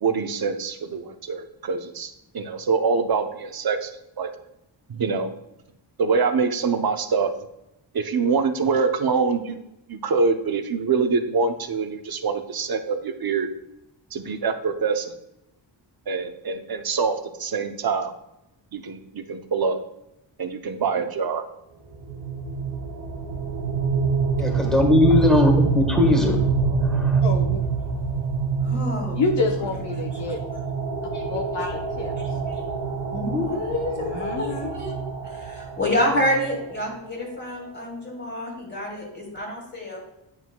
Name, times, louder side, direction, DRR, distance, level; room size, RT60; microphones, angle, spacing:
voice 1, 0.0-3.9 4.2-4.3 4.9-5.3 6.0-7.3 7.9-9.6 9.9-13.5 14.1-15.1 16.1-18.1 18.7-19.8 20.4-21.4, right 5 dB, 50° right, 7 dB, 0.7 m, -25 dB
sound 1, 21.9-36.8, right 5 dB, 70° right, 1.4 m, -26 dB
voice 2, 24.4-27.2, left 2 dB, ahead, 1 dB, 1.4 m, -20 dB
voice 3, 27.2-27.6 29.2-30.4 31.3-31.7 32.0-32.1 33.9-34.7, left 3 dB, 60° left, 1 dB, 0.7 m, -27 dB
voice 4, 28.6-29.2 30.1-30.2 33.1-35.0 35.3-40.0, left 1 dB, 20° left, -2 dB, 2.1 m, -27 dB
8.9 x 6.1 x 2.2 m, 0.87 s
wide cardioid pair, 110°, 47 cm